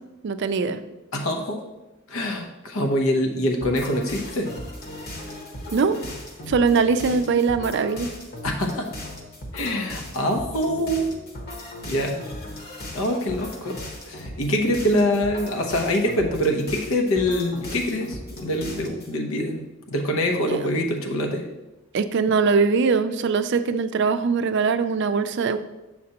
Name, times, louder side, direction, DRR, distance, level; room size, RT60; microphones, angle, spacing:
voice 1, 0.2-0.8 5.7-6.0 6.5-8.1 20.5-20.6 21.9-25.6, right 5 dB, 55° right, 10 dB, 0.4 m, -21 dB
voice 2, 1.1-1.6 2.1-4.5 8.4-8.9 9.5-11.1 11.5-11.6 11.9-12.2 12.9-13.8 14.1-21.5, equal, 85° left, 3 dB, 0.8 m, -24 dB
sound 1, 3.6-19.1, left 1 dB, 50° left, 1.1 m, -37 dB
7.5 x 5.9 x 2.9 m, 1.0 s
head